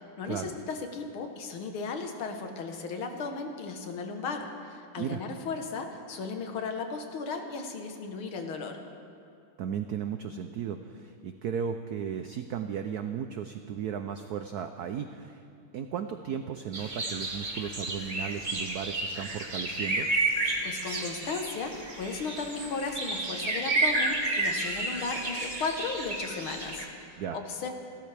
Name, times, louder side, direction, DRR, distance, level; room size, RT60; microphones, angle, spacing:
voice 1, 0.2-8.8 20.6-27.7, left 4 dB, 75° left, 5 dB, 2.0 m, -35 dB
voice 2, 9.6-15.4 15.7-20.1 27.2-27.4, right 8 dB, 80° right, 7 dB, 0.8 m, -35 dB
sound 1, 16.7-26.8, right 2 dB, 25° right, 1.3 m, -31 dB
29.0 x 13.0 x 3.4 m, 2.5 s
omnidirectional pair, 2.3 m